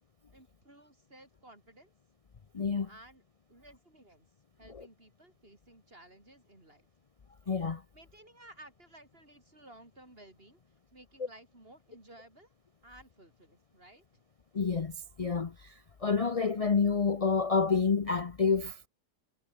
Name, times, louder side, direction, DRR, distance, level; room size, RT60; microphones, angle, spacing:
voice 1, 0.3-1.9 2.9-3.2 3.5-4.3 4.6-6.9 7.9-10.6 10.9-12.5 12.8-14.2, right 1 dB, 35° right, 6.5 m, -56 dB
voice 2, 2.5-2.9 4.7-4.9 7.5-7.8 14.5-18.9, left 5 dB, 45° left, 0.4 m, -29 dB
omnidirectional pair, 1.8 m